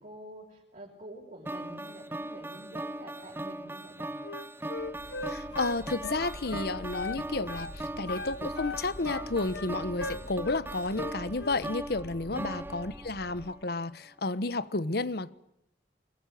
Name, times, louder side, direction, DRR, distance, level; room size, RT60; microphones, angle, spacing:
voice 1, 0.0-4.2 4.5-4.6, right 1 dB, 45° right, 6.3 m, -48 dB
sound 1, 1.5-13.6, right 1 dB, 15° right, 0.9 m, -40 dB
Wind instrument woodwind instrument, 4.2-7.2 7.5-7.7 8.1-10.6 10.9-11.6, left 3 dB, 90° left, 1.3 m, -38 dB
sound 2, 4.8-13.4, equal, 25° left, 7.3 m, -47 dB
voice 2, 5.3-15.3, left 3 dB, 60° left, 1.1 m, -32 dB
25.0 x 22.0 x 9.3 m
head